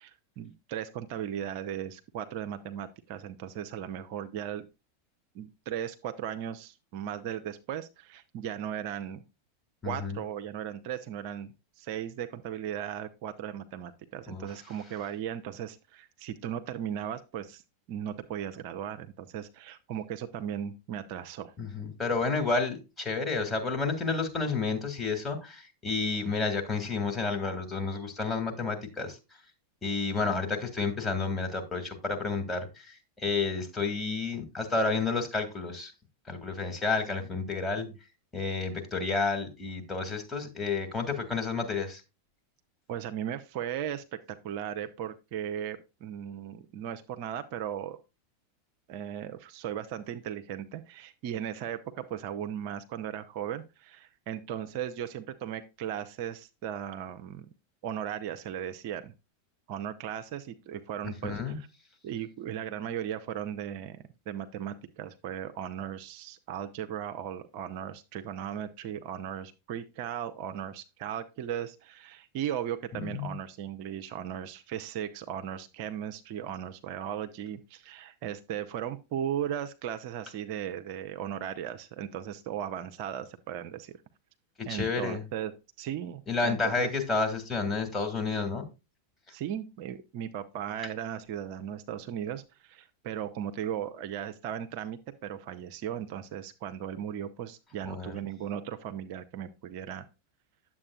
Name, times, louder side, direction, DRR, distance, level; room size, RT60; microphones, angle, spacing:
voice 1, 0.0-4.7 5.3-9.2 9.8-11.5 11.8-17.6 17.9-21.5 37.8-37.9 42.9-48.0 48.9-57.5 57.8-59.1 59.7-61.7 62.0-84.0 84.7-85.5 85.8-86.9 89.3-100.1, right 9 dB, 45° right, 9 dB, 0.6 m, -37 dB
voice 2, 9.8-10.2 14.3-14.5 21.6-29.2 29.8-35.9 36.3-37.9 38.3-42.0 61.2-61.6 72.9-73.3 84.6-85.2 86.3-88.6 97.8-98.1, left 4 dB, 15° left, 3 dB, 1.9 m, -30 dB
9.7 x 7.5 x 2.3 m, 0.27 s
figure-of-eight pair, 90°, 0 cm